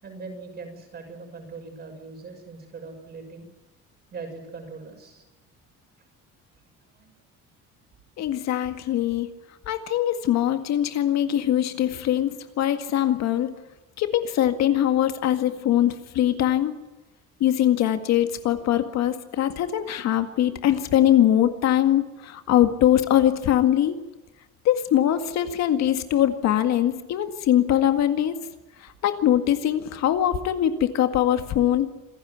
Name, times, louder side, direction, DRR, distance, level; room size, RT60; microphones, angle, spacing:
voice 1, 0.0-3.5 4.1-5.2 7.0-7.1, right 4 dB, 30° right, 4 dB, 6.6 m, -40 dB
voice 2, 8.2-9.3 9.7-13.5 14.0-16.7 17.4-24.0 24.6-28.4 28.8-31.9, left 11 dB, 60° left, 8 dB, 2.0 m, -22 dB
27.5 x 16.0 x 9.4 m, 1.1 s
cardioid pair, 175°, 31 cm